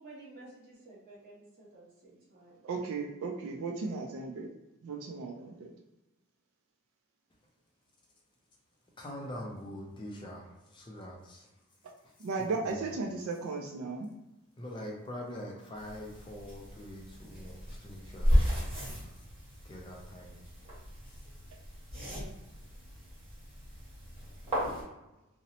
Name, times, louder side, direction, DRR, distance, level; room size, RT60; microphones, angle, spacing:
voice 1, 0.0-2.6, right 2 dB, 40° right, -7 dB, 1.0 m, -52 dB
voice 2, 2.6-4.5 4.8-5.7 12.2-14.1, right 4 dB, 70° right, 1 dB, 0.3 m, -35 dB
voice 3, 9.0-11.5 12.0-12.3 12.7-12.9 14.6-19.2 19.6-20.4 21.1-21.2, left 1 dB, 20° left, -1 dB, 0.3 m, -44 dB
sound 1, 15.7-24.8, equal, 25° right, 1.2 m, -34 dB
2.7 x 2.0 x 2.7 m, 0.97 s
head